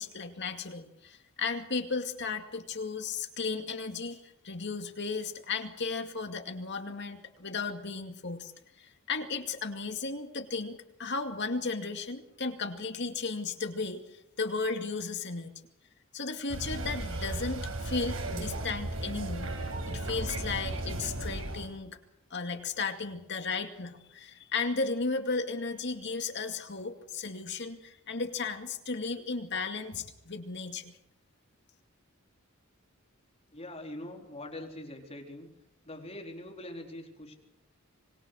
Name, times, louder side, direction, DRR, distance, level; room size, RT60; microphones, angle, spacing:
voice 1, 0.0-8.5 8.8-15.5 16.1-22.0 22.3-30.9, left 4 dB, 60° left, 5 dB, 2.3 m, -35 dB
sound 1, 16.5-21.7, right 1 dB, 80° right, 5.3 m, -35 dB
voice 2, 33.5-35.5 35.8-37.3, left 1 dB, 30° left, 1 dB, 4.2 m, -43 dB
26.0 x 21.0 x 6.4 m, 0.82 s
head